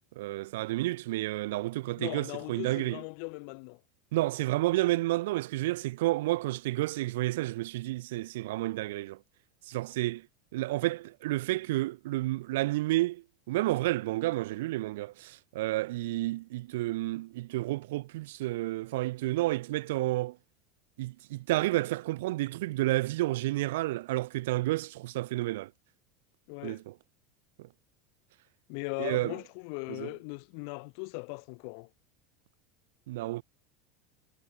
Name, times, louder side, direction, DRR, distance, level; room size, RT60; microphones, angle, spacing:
voice 1, 0.2-3.0 4.1-9.2 9.7-10.3 10.5-20.4 21.0-25.7 26.6-26.9 27.6-27.7 29.0-29.3 29.9-30.1 33.1-33.4, right 18 dB, 80° right, 1.1 m, -30 dB
voice 2, 2.0-3.8 26.5-26.8 28.7-31.9, left 40 dB or more, 55° left, 2.2 m, -39 dB
supercardioid pair, 170°, 0 cm